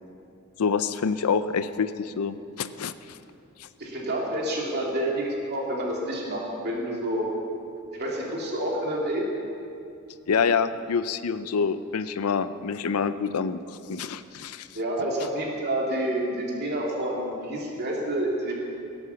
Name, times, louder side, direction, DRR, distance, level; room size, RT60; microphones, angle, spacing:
voice 1, 0.6-3.2 3.6-3.7 10.3-13.6 13.9-14.7, left 5 dB, 80° left, 13 dB, 0.5 m, -27 dB
voice 2, 3.8-7.3 7.9-9.2 14.7-18.5, right 1 dB, 50° right, -2 dB, 2.6 m, -28 dB
17.0 x 8.0 x 7.0 m, 2.6 s
head